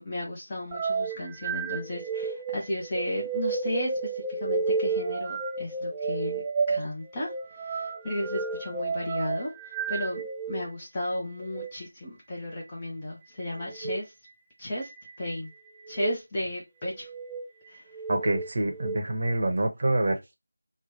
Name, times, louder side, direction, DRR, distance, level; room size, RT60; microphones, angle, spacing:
voice 1, 0.0-6.4 6.7-10.2 10.5-14.1 14.6-14.9 15.2-15.5 15.9-17.1 17.7-17.9, left 1 dB, 20° left, 0.7 m, -34 dB
sound 1, 0.7-10.6 11.4-11.7 13.7-14.0 14.8-15.3 15.9-16.2 17.0-17.5 17.9-19.0, right 4 dB, 15° right, 0.3 m, -31 dB
voice 2, 18.1-20.3, right 2 dB, 40° right, 0.8 m, -26 dB
3.1 x 2.2 x 4.0 m
figure-of-eight pair, 170°, 0 cm